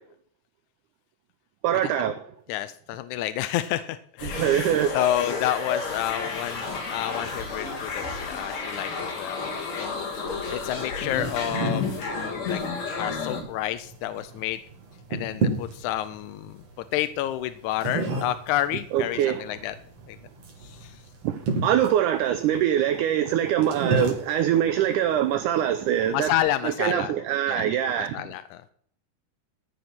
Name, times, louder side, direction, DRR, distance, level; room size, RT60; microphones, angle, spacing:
voice 1, 1.6-2.2 4.2-5.0 18.9-19.4 21.2-26.3 26.6-28.2, right 10 dB, 75° right, 2.1 m, -24 dB
voice 2, 2.5-6.7 6.9-9.5 9.8-10.2 10.5-12.6 13.0-14.6 15.1-16.6 16.9-19.7 20.1-20.2 20.6-21.0 26.1-27.1 27.5-27.7 28.0-28.6, left 13 dB, 80° left, 1.8 m, -29 dB
sound 1, 4.2-13.4, left 4 dB, 55° left, 4.0 m, -32 dB
sound 2, 10.5-26.4, right 3 dB, 50° right, 3.0 m, -34 dB
15.0 x 6.5 x 6.0 m
omnidirectional pair, 3.9 m